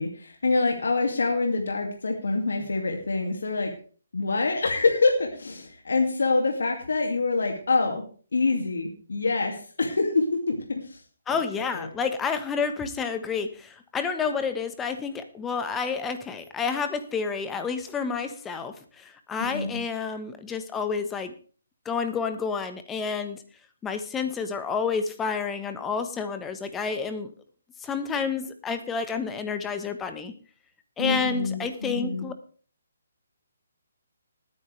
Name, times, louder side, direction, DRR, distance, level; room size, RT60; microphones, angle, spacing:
voice 1, 0.0-3.7 4.1-8.0 8.3-11.0 11.3-11.4 11.7-11.9 19.4-19.8 31.0-32.3, left 3 dB, 75° left, 2 dB, 2.5 m, -26 dB
voice 2, 11.3-21.3 21.8-23.4 23.8-27.3 27.8-30.3 31.0-32.3, left 5 dB, 10° left, 8 dB, 1.3 m, -29 dB
19.0 x 9.7 x 3.4 m, 0.42 s
figure-of-eight pair, 145°, 0 cm